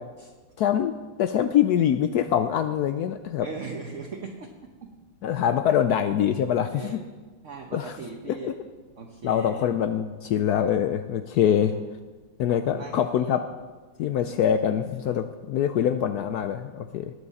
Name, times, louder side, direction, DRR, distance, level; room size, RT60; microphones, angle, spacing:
voice 1, 0.6-0.9 1.2-3.5 5.2-7.0 7.7-7.9 8.3-8.5 9.2-11.7 12.4-13.4 14.0-17.1, left 9 dB, 85° left, 9 dB, 0.8 m, -24 dB
voice 2, 3.4-4.5 6.7-7.1 7.4-8.5 9.0-9.7 11.7-11.8 12.7-13.4 14.4-14.8 15.0-15.2, right 4 dB, 50° right, 3 dB, 1.0 m, -39 dB
19.0 x 8.2 x 4.1 m, 1.3 s
omnidirectional pair, 2.2 m